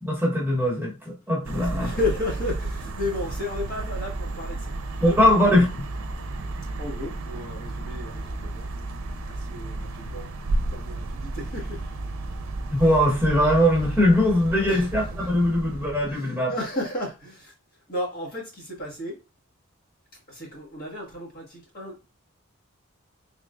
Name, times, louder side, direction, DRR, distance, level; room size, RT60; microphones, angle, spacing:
voice 1, 0.0-1.9 5.0-5.6 12.7-16.5, left 1 dB, 10° right, 1.2 m, -21 dB
voice 2, 1.4-5.6 6.8-8.7 9.3-10.3 10.7-11.8 12.8-12.9 14.5-14.9 16.1-17.5 17.9-19.2 20.3-22.0, left 2 dB, 45° left, 1.5 m, -33 dB
sound 1, 1.4-16.1, right 2 dB, 80° right, 0.6 m, -33 dB
3.6 x 3.5 x 2.4 m
head